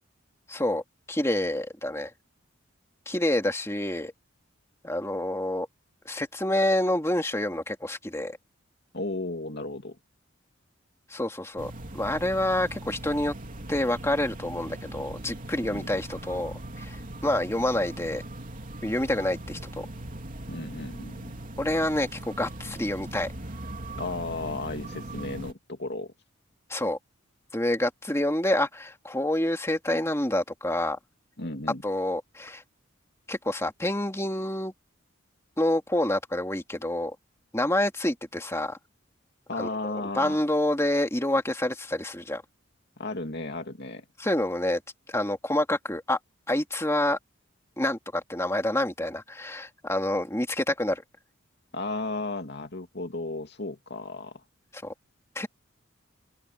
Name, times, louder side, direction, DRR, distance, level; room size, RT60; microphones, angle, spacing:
voice 1, 0.5-2.1 3.1-4.1 4.8-5.7 6.1-8.4 11.1-13.3 13.7-17.0 17.2-18.2 18.8-19.9 21.6-23.3 26.7-27.0 27.5-31.0 31.8-32.6 33.3-34.7 35.6-37.2 37.5-38.8 39.6-42.4 44.2-44.8 45.1-46.2 46.5-47.2 47.8-51.0 54.8-54.9 55.4-55.5, left 1 dB, 15° left, 2.5 m, -27 dB
voice 2, 8.9-10.0 15.7-15.9 20.5-21.3 24.0-26.1 31.4-31.8 39.5-40.4 43.0-44.0 51.7-54.4, left 2 dB, 55° left, 2.7 m, -34 dB
sound 1, 11.6-25.5, right 1 dB, 40° right, 3.3 m, -40 dB
open air
head